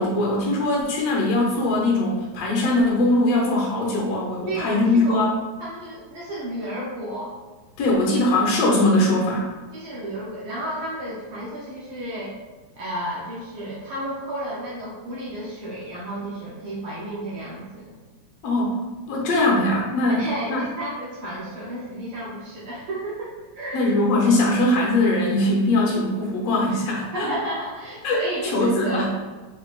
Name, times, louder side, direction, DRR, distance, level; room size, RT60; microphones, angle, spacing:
voice 1, 0.0-5.3 7.8-9.5 18.4-18.8 19.1-20.6 23.7-27.3 28.0-29.1, left 2 dB, 65° left, -3 dB, 1.9 m, -21 dB
voice 2, 4.5-5.3 5.6-7.4 9.7-12.3 12.8-17.9 20.2-23.9 26.7-26.8 27.1-29.1, right 1 dB, 75° right, -7 dB, 1.2 m, -32 dB
5.4 x 3.5 x 2.4 m, 1.3 s
omnidirectional pair, 3.4 m